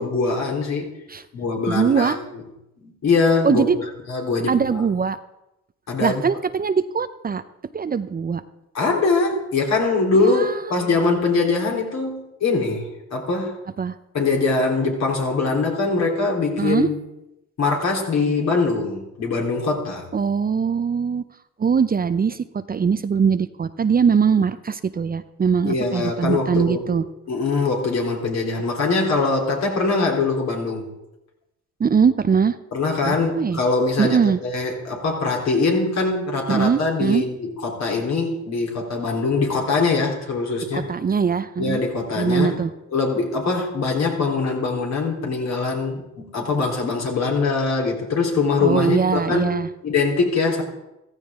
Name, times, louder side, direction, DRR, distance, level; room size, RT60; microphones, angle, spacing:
voice 1, 0.0-0.9 1.3-2.1 2.8-3.6 4.1-4.8 5.9-6.2 8.7-13.6 14.1-17.0 17.6-20.0 25.6-27.0 27.3-30.9 32.7-40.8 41.6-42.6 42.9-49.5 49.8-50.6, left 3 dB, 60° left, 0 dB, 3.5 m, -22 dB
voice 2, 1.7-2.2 3.4-3.9 4.5-5.2 6.0-7.4 7.7-8.4 10.2-10.8 13.8-13.9 16.6-16.9 20.1-21.2 21.6-27.0 31.8-32.6 33.0-33.6 34.0-34.4 36.5-37.2 40.7-41.8 42.2-42.7 48.6-49.7, right 6 dB, 30° right, 12 dB, 0.6 m, -21 dB
15.0 x 14.5 x 3.7 m, 0.92 s
cardioid pair, 90°, 30 cm